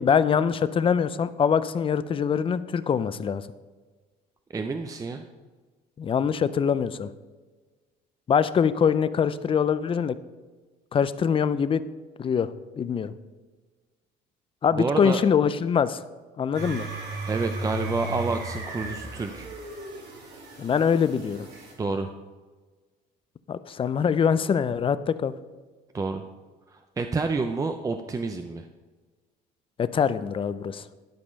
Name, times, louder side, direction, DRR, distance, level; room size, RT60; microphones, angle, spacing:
voice 1, 0.0-3.4 6.0-7.1 8.3-10.2 10.9-11.8 12.2-12.5 12.8-13.1 14.6-16.0 16.4-16.9 20.6-21.5 23.5-25.3 29.8-30.8, left 7 dB, 30° left, 14 dB, 0.5 m, -23 dB
voice 2, 4.5-5.2 14.8-15.2 17.3-19.5 21.8-22.1 25.9-26.2 26.7-28.7, right 3 dB, 20° right, 6 dB, 0.5 m, -29 dB
sound 1, 16.5-21.7, right 2 dB, 75° right, 2.9 m, -35 dB
11.5 x 5.3 x 5.3 m, 1.3 s
cardioid pair, 110°, 17 cm